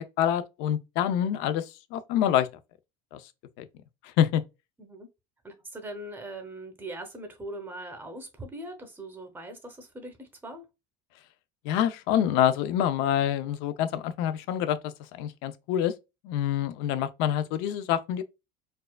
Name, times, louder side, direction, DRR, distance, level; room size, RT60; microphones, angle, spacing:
voice 1, 0.0-2.5 3.1-3.2 3.6-3.7 4.0-4.4 11.6-15.9 16.2-18.2, left 10 dB, 60° left, 0.5 m, -26 dB
voice 2, 5.4-10.6, right 1 dB, 10° right, 0.7 m, -41 dB
4.4 x 2.4 x 2.2 m
cardioid pair, 155°, 21 cm